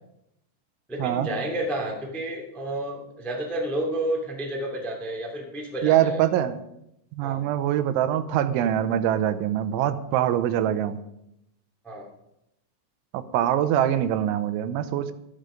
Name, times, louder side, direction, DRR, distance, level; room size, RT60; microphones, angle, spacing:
voice 1, 0.9-6.2 7.2-7.4 11.8-12.1, right 1 dB, ahead, -1 dB, 1.3 m, -30 dB
voice 2, 5.8-6.6 7.2-11.0 13.1-15.1, right 11 dB, 85° right, 11 dB, 3.2 m, -24 dB
13.0 x 12.0 x 5.2 m, 0.81 s
omnidirectional pair, 5.4 m